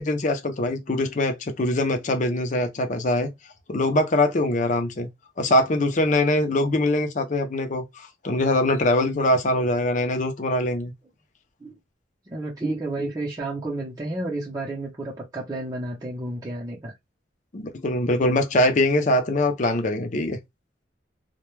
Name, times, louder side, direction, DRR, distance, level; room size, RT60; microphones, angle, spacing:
voice 1, 0.0-3.3 3.7-5.1 5.4-10.9 17.5-20.4, left 1 dB, 40° left, 0.5 m, -23 dB
voice 2, 12.3-16.9, right 2 dB, 20° right, 0.6 m, -31 dB
2.2 x 2.1 x 3.0 m
head